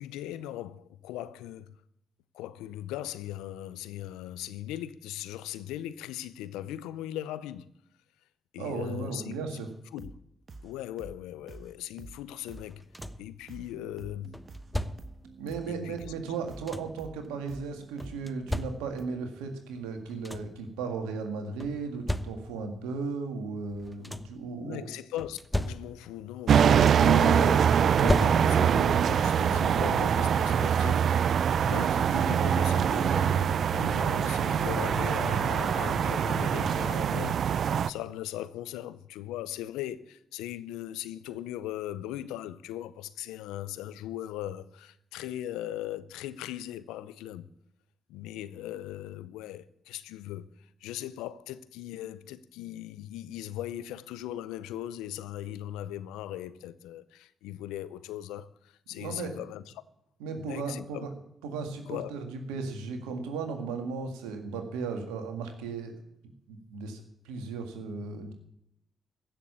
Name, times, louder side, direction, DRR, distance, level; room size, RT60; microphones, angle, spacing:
voice 1, 0.0-1.7 2.3-7.7 8.5-9.3 9.9-10.1 10.6-12.8 13.2-14.4 15.7-16.5 24.5-47.5 48.1-59.6 60.3-61.1 61.9-62.1, left 13 dB, 85° left, 0.6 m, -39 dB
voice 2, 8.6-9.7 15.4-24.9 59.0-59.4 60.2-61.1 61.4-65.9 66.5-68.3, right 4 dB, 90° right, 1.8 m, -36 dB
sound 1, 10.0-10.2 10.5-10.7 11.0-11.2 11.5-11.7 12.0-12.2 12.5-12.7 13.0-13.2 13.5-19.0, right 3 dB, 50° right, 1.3 m, -48 dB
sound 2, 12.6-13.4 14.3-15.3 16.2-17.1 18.0-19.2 19.8-19.9 20.1-20.7 21.6-22.8 23.7-24.5 25.2-26.2 26.5-27.2 27.9-28.9 30.2-30.3 30.8-31.0, left 1 dB, 5° left, 1.0 m, -35 dB
sound 3, 26.5-37.9, right 8 dB, 65° right, 0.4 m, -24 dB
15.5 x 6.8 x 8.5 m
hypercardioid pair, 40°, 0 cm